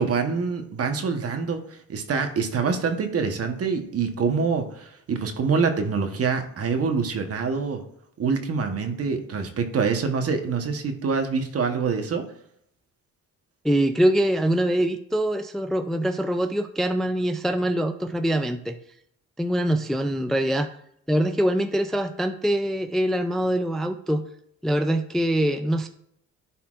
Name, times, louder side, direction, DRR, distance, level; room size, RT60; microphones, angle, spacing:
voice 1, 0.0-7.8 8.2-12.2, right 5 dB, 50° right, 6 dB, 1.2 m, -25 dB
voice 2, 13.6-18.8 19.4-20.7 21.1-24.3 24.6-25.9, right 1 dB, ahead, 8 dB, 0.4 m, -24 dB
11.0 x 4.3 x 2.5 m, 0.70 s
cardioid pair, 90°, 30 cm